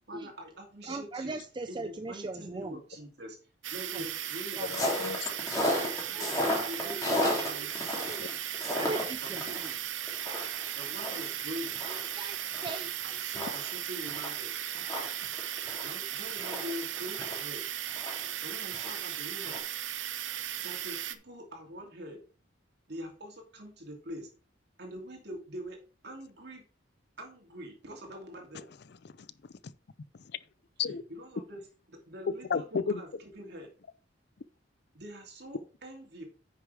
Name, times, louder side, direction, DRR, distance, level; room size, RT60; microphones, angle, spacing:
voice 1, 0.1-1.4 1.7-3.4 3.7-4.7 6.1-7.7 8.8-9.6 10.7-11.8 13.0-14.5 15.8-17.7 18.4-19.7 20.6-22.2 22.9-24.3 24.8-26.6 27.2-28.7 30.9-33.7 35.0-36.2, equal, 60° right, 2.7 m, -44 dB
voice 2, 0.9-2.8 3.9-4.1 4.5-4.7 5.6-9.7 11.9-13.0, right 3 dB, 25° right, 0.5 m, -41 dB
sound 1, 3.6-21.2, right 11 dB, 80° right, 0.7 m, -37 dB
voice 3, 4.6-5.2 8.2-8.3 28.9-29.5 30.1-30.4 30.8-31.0 32.5-33.0, left 5 dB, 60° left, 0.5 m, -34 dB
sound 2, 4.7-9.7 10.1-12.8 13.1-13.2 13.3-17.4 17.9-19.1 19.4-19.6, left 1 dB, 20° left, 2.9 m, -34 dB
9.7 x 6.5 x 3.4 m
head